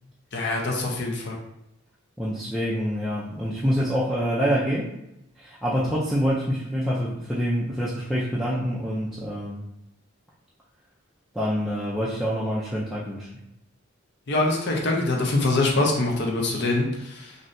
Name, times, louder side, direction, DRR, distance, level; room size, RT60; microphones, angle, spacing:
voice 1, 0.3-1.4 14.3-17.4, left 2 dB, 55° left, -1 dB, 0.6 m, -24 dB
voice 2, 2.2-4.9 5.4-9.6 11.3-13.3, equal, ahead, -8 dB, 0.3 m, -26 dB
3.1 x 2.6 x 2.5 m, 0.84 s
head